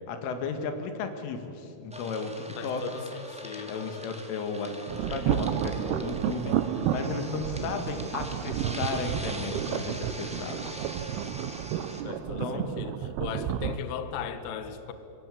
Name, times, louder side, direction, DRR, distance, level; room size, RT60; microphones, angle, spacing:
voice 1, 0.1-2.8 3.7-10.8 12.4-12.8, left 4 dB, 85° left, 7 dB, 4.4 m, -34 dB
sound 1, 1.9-12.0, equal, 5° right, 0.5 m, -43 dB
voice 2, 2.6-4.0 12.0-14.9, left 8 dB, 65° left, 9 dB, 2.5 m, -38 dB
sound 2, 4.9-13.8, right 10 dB, 75° right, 2.5 m, -31 dB
26.5 x 23.0 x 8.6 m, 2.9 s
omnidirectional pair, 5.6 m